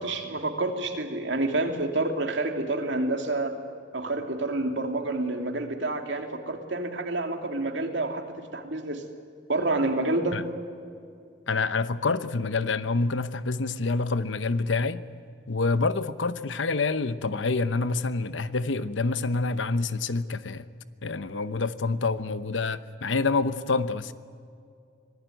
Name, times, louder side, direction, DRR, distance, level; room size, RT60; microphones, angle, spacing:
voice 1, 0.0-3.6 3.9-8.2 8.5-9.0 9.5-10.4, right 2 dB, 75° right, 2.6 m, -28 dB
voice 2, 11.5-15.0 15.5-20.7 21.0-24.1, left 3 dB, 90° left, 0.9 m, -27 dB
25.5 x 18.0 x 9.2 m
head